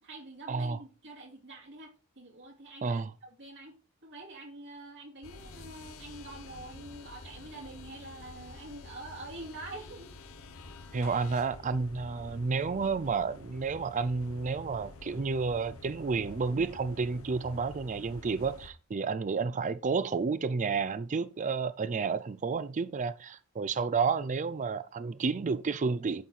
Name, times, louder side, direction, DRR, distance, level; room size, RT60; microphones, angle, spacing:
voice 1, 0.0-10.1, right 2 dB, 55° right, 3.1 m, -46 dB
sound 1, 5.2-18.7, left 3 dB, 70° left, 1.0 m, -49 dB
voice 2, 10.9-26.2, right 4 dB, 35° right, 0.4 m, -31 dB
11.0 x 4.2 x 4.6 m
head